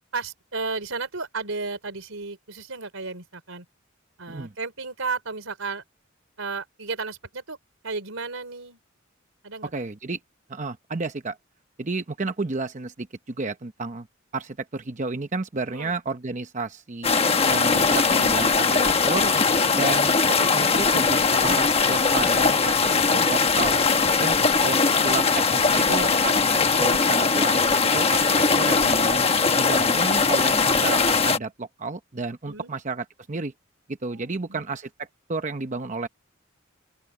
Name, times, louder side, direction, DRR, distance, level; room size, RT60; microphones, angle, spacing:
voice 1, 0.1-3.7 4.2-5.8 6.4-7.6 7.8-8.8 9.4-9.7 15.7-15.9 19.5-20.0 32.5-32.8 34.0-34.6, right 4 dB, 90° right, 3.5 m, -34 dB
voice 2, 9.6-10.2 10.5-11.4 11.8-14.1 14.3-17.2 17.5-19.3 19.7-23.8 24.1-24.4 24.6-26.5 26.8-28.3 28.6-29.3 29.5-33.5 33.9-36.1, right 3 dB, 35° right, 0.8 m, -31 dB
sound 1, 17.0-31.4, left 4 dB, 30° left, 1.1 m, -20 dB
open air
head